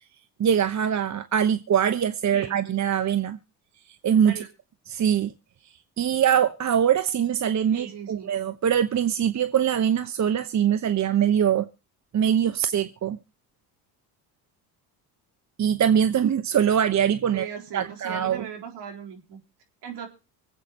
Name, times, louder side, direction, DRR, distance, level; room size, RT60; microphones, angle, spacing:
voice 1, 0.4-3.4 4.0-4.3 4.9-5.3 6.0-11.7 12.1-13.2 15.6-17.5 17.7-18.5, right 9 dB, 40° right, 0.9 m, -23 dB
voice 2, 7.7-8.4 17.3-19.4 19.8-20.1, right 8 dB, 65° right, 4.0 m, -38 dB
24.5 x 8.4 x 3.0 m
supercardioid pair, 70°, 44 cm